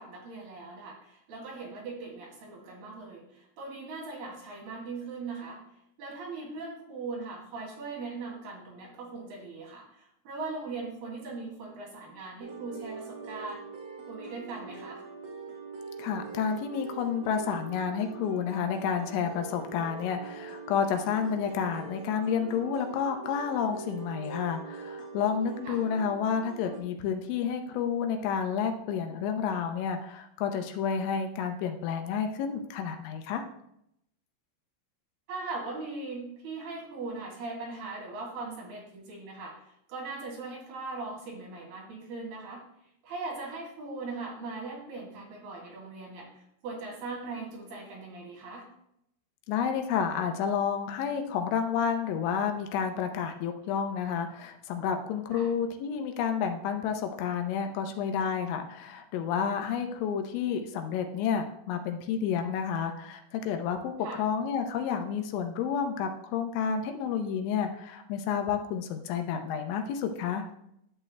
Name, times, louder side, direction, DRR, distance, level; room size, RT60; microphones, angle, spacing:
voice 1, 0.0-5.6 6.0-13.7 14.1-15.0 25.6-25.8 35.3-39.5 39.9-42.6 43.0-48.7 55.3-55.5 64.0-64.2, right 3 dB, 60° right, -2 dB, 4.1 m, -40 dB
sound 1, 12.4-26.8, right 4 dB, 75° right, 4.1 m, -43 dB
voice 2, 16.0-33.5 49.5-70.5, left 7 dB, 80° left, 5 dB, 3.1 m, -30 dB
12.5 x 8.5 x 2.2 m, 0.76 s
omnidirectional pair, 5.4 m